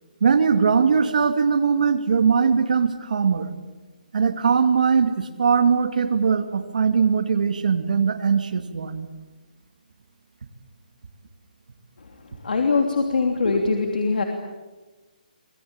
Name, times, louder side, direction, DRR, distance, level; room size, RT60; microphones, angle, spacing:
voice 1, 0.2-3.5 4.1-9.1, right 6 dB, 65° right, 8 dB, 2.4 m, -20 dB
voice 2, 12.4-14.2, left 4 dB, 85° left, 3 dB, 3.1 m, -22 dB
25.5 x 19.0 x 8.9 m, 1.2 s
hypercardioid pair, 175°, 5 cm